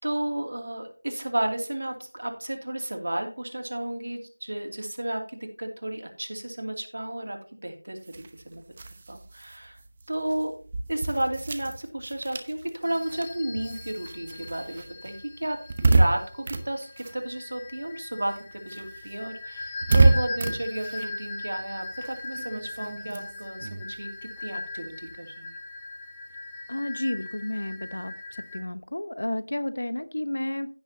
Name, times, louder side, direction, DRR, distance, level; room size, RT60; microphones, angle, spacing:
voice 1, 0.0-8.6 9.1-9.8 10.1-10.6 10.9-25.6, right 1 dB, 50° right, 4 dB, 2.6 m, -32 dB
sound 1, 8.0-17.9 18.2-25.1, right 3 dB, 20° right, 0.9 m, -29 dB
sound 2, 12.8-28.6, left 3 dB, 10° left, 1.1 m, -40 dB
voice 2, 26.7-30.7, left 1 dB, 60° left, 13 dB, 1.0 m, -31 dB
16.0 x 6.4 x 2.8 m, 0.39 s
figure-of-eight pair, 175°, 0 cm